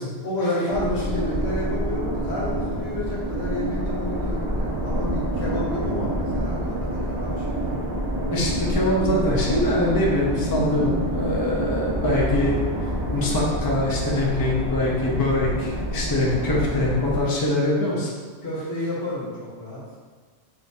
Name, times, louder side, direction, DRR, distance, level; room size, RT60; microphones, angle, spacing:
voice 1, 0.2-7.7 18.4-19.8, left 1 dB, 70° left, -6 dB, 1.5 m, -30 dB
sound 1, 0.7-17.2, right 1 dB, 25° right, 0.5 m, -27 dB
voice 2, 8.3-12.6 13.1-18.1, left 1 dB, 25° left, -4 dB, 0.6 m, -23 dB
6.3 x 3.0 x 2.7 m, 1.5 s
omnidirectional pair, 1.1 m